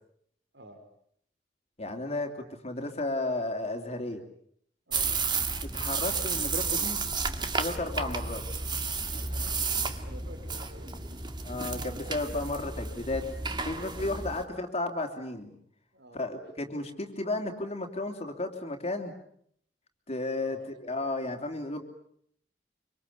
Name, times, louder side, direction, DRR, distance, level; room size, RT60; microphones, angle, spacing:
voice 1, 1.8-4.2 5.6-7.0 7.5-8.4 11.4-13.3 13.6-15.6 16.1-19.1 20.1-21.8, left 2 dB, 40° left, 4 dB, 3.2 m, -33 dB
sound 1, 4.9-14.4, right 4 dB, 25° right, 2.0 m, -32 dB
voice 2, 9.1-11.2 13.9-14.2 15.9-16.3 16.6-16.7 20.4-20.6, equal, 85° right, 5 dB, 4.8 m, -50 dB
25.5 x 25.5 x 8.5 m, 0.68 s
head